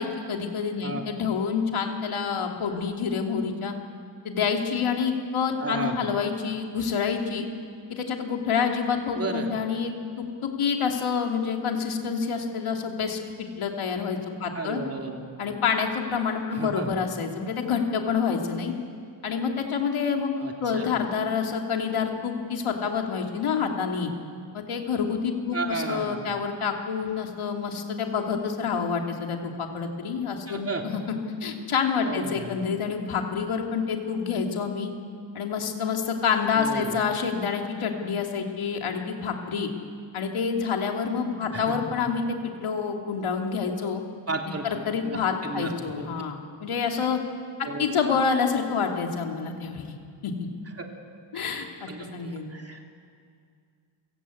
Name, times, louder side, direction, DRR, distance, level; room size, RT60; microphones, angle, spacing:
voice 1, 0.0-3.7 4.2-7.5 7.9-9.9 10.4-14.8 15.4-18.7 19.2-20.3 20.6-24.1 24.5-31.0 31.4-34.9 35.3-39.7 40.1-44.0 44.6-47.2 47.8-49.9 50.2-50.5 51.3-52.5, left 6 dB, 80° left, 2 dB, 2.9 m, -27 dB
voice 2, 5.6-6.0 9.1-9.5 14.5-15.3 16.5-16.9 20.4-20.9 25.5-26.3 30.5-30.8 32.0-32.5 36.5-37.0 41.5-41.8 44.3-46.1 47.6-48.0 50.8-50.9 51.3-52.8, right 3 dB, 30° right, 2 dB, 3.1 m, -34 dB
30.0 x 17.0 x 8.6 m, 2.3 s
wide cardioid pair, 115°, 49 cm